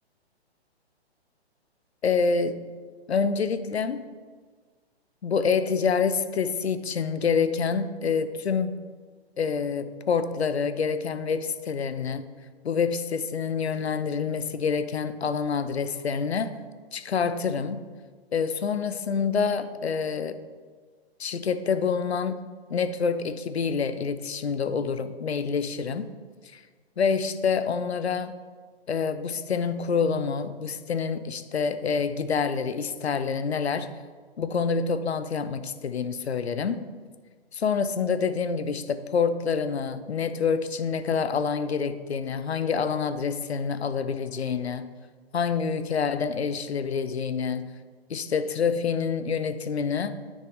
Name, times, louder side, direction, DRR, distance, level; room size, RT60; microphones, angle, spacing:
voice 1, 2.0-2.6 3.1-4.0 5.2-8.8 9.4-12.2 12.6-16.5 16.9-17.8 18.3-20.4 21.2-22.4 22.7-26.1 26.5-26.6 27.0-28.3 28.9-33.9 34.4-36.8 37.5-44.8 45.3-47.6 48.1-50.1, left 5 dB, 75° left, 12 dB, 0.7 m, -27 dB
9.7 x 6.5 x 3.6 m, 1.5 s
figure-of-eight pair, 125°, 32 cm